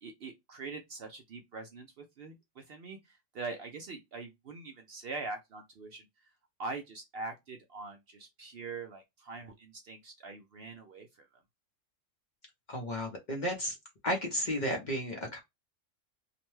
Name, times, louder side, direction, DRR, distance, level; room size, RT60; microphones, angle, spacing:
voice 1, 0.0-6.1 6.6-11.3, right 3 dB, 60° right, 0.6 m, -43 dB
voice 2, 12.7-13.8 14.0-15.4, equal, 45° left, 0.7 m, -33 dB
2.6 x 2.1 x 3.0 m
omnidirectional pair, 1.3 m